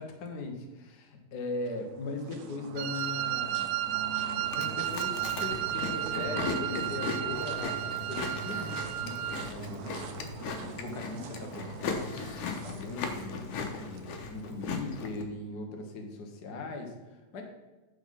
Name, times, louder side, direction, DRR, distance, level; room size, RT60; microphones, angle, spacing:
voice 1, 0.0-3.7 4.2-9.8 10.4-12.2 12.5-17.4, left 3 dB, 60° left, 3 dB, 1.1 m, -39 dB
sound 1, 1.6-14.9, right 6 dB, 70° right, 1.7 m, -43 dB
Wind instrument woodwind instrument, 2.8-9.5, right 13 dB, 90° right, 1.5 m, -33 dB
Chewing mastication, 4.4-15.2, left 5 dB, 75° left, 2.4 m, -38 dB
10.5 x 5.2 x 5.8 m, 1.2 s
omnidirectional pair, 3.8 m